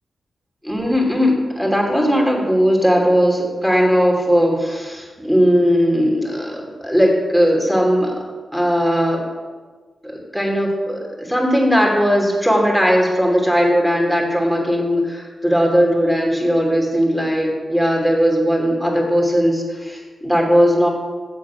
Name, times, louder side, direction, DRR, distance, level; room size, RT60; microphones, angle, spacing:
voice 1, 0.6-8.1 8.5-9.2 10.0-20.9, equal, 5° right, -2 dB, 2.8 m, -18 dB
7.4 x 7.3 x 6.0 m, 1.4 s
cardioid pair, 55°, 0 cm